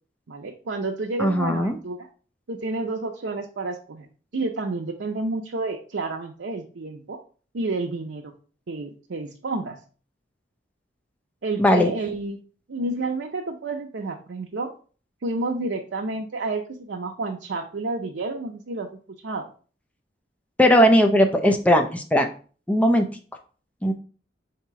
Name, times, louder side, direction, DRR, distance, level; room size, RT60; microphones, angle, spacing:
voice 1, 0.3-2.1 2.5-4.1 4.3-7.2 7.5-8.3 8.7-9.8 11.4-12.4 12.7-14.7 15.2-18.9 19.2-19.5, right 3 dB, 80° right, 1 dB, 0.6 m, -30 dB
voice 2, 1.2-1.8 11.6-11.9 20.6-22.3 22.7-23.1 23.8-23.9, equal, 10° left, 3 dB, 0.5 m, -18 dB
4.0 x 2.9 x 4.5 m, 0.40 s
head